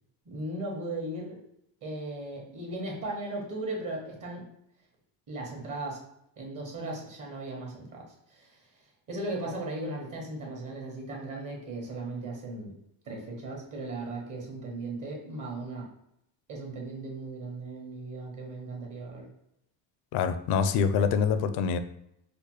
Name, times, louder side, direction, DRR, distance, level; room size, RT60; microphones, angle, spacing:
voice 1, 0.2-1.4 1.8-4.5 5.3-6.0 6.4-8.7 9.1-12.7 13.0-15.9 16.5-19.3, right 2 dB, 45° right, -1 dB, 1.2 m, -37 dB
voice 2, 20.1-21.8, left 6 dB, 65° left, 10 dB, 0.5 m, -25 dB
4.8 x 2.0 x 3.0 m, 0.80 s
cardioid pair, 110°, 44 cm